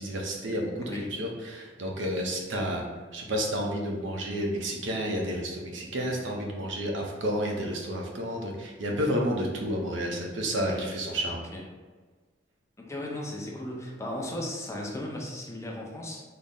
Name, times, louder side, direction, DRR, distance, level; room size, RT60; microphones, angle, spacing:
voice 1, 0.0-2.8 3.1-11.4, equal, 80° right, 0 dB, 0.7 m, -31 dB
voice 2, 12.8-16.2, left 1 dB, 15° left, -1 dB, 0.5 m, -36 dB
4.0 x 2.0 x 3.5 m, 1.4 s
head